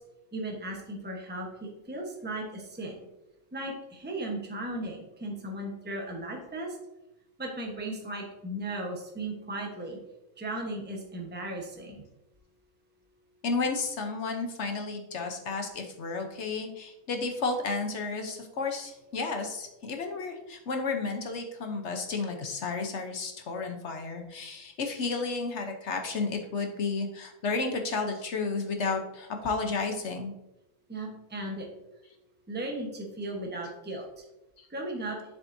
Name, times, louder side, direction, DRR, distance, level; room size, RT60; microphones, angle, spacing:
voice 1, 0.3-3.0 3.5-6.8 7.4-10.0 10.4-12.0 30.9-31.7 32.5-34.1 34.7-35.2, right 1 dB, 10° right, 0 dB, 1.0 m, -36 dB
voice 2, 13.4-30.3, left 4 dB, 60° left, 4 dB, 1.1 m, -32 dB
7.3 x 7.1 x 2.7 m, 0.91 s
omnidirectional pair, 1.5 m